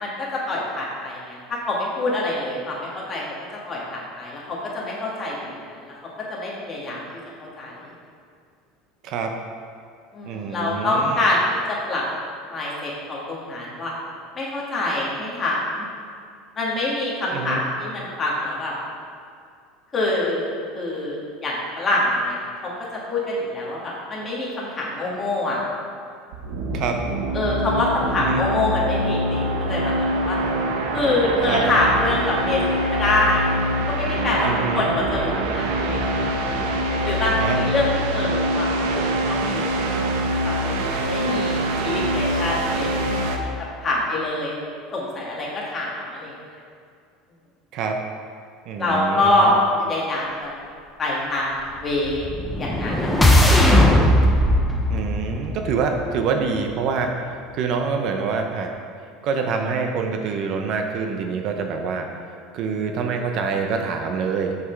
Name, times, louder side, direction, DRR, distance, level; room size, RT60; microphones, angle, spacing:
voice 1, 0.0-3.2 3.7-5.9 6.3-7.0 7.4-7.9 10.1-12.0 12.5-13.9 14.4-15.8 16.6-18.7 19.9-25.6 27.3-30.4 30.9-33.5 33.9-36.6 37.0-43.2 43.4-43.5 43.8-44.5 44.9-46.3 48.8-50.5 51.0-52.3 52.6-53.9, left 2 dB, 25° left, -5 dB, 1.8 m, -25 dB
voice 2, 9.0-9.4 10.2-11.2 17.3-17.6 26.7-27.0 28.2-28.4 31.4-31.6 34.4-34.9 37.4-37.7 47.7-48.0 48.7-49.5 54.9-58.8 59.2-64.6, right 5 dB, 50° right, 4 dB, 0.6 m, -26 dB
sound 1, 26.3-43.4, right 1 dB, 85° right, 0.8 m, -24 dB
sound 2, 52.0-56.3, left 1 dB, 5° left, 0.7 m, -18 dB
6.3 x 5.9 x 4.6 m, 2.3 s
supercardioid pair, 140°, 0 cm